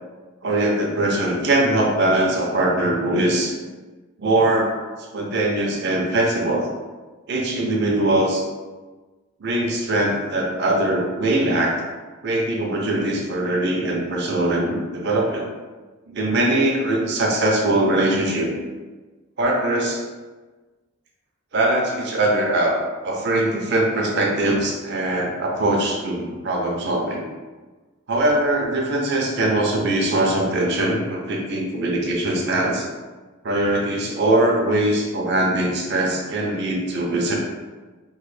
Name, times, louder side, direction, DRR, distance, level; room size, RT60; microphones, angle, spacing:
voice 1, 0.4-3.5 4.2-4.7 5.1-6.7 7.3-8.4 9.4-11.8 12.2-15.5 16.1-18.6 19.4-20.1 21.5-27.3 28.1-32.8 33.4-37.4, right 1 dB, 55° right, -1 dB, 0.6 m, -21 dB
3.1 x 2.1 x 3.2 m, 1.3 s
head